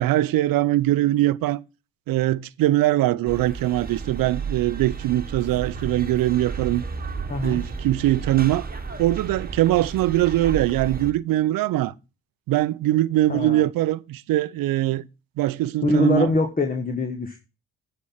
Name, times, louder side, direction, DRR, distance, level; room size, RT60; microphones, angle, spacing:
voice 1, 0.0-1.6 2.1-6.8 7.4-8.7 9.0-11.9 12.5-15.1 15.4-16.3, right 15 dB, 75° right, 0.6 m, -22 dB
sound 1, 3.3-11.1, right 5 dB, 25° right, 1.5 m, -33 dB
voice 2, 7.3-7.6 13.3-13.6 15.8-17.4, left 2 dB, 25° left, 1.5 m, -23 dB
9.7 x 4.4 x 7.2 m
supercardioid pair, 50°, 35 cm